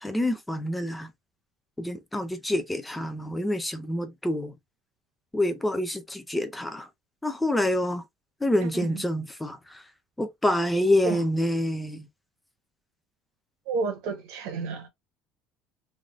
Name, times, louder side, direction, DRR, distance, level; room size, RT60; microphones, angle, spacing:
voice 1, 0.0-1.1 1.8-4.5 5.3-6.9 7.2-8.0 8.4-9.8 10.2-12.1, left 1 dB, 5° left, 0.4 m, -27 dB
voice 2, 8.6-9.0 11.0-11.2 13.7-14.9, right 4 dB, 75° right, 1.0 m, -31 dB
3.3 x 2.5 x 2.4 m
cardioid pair, 170°, 0 cm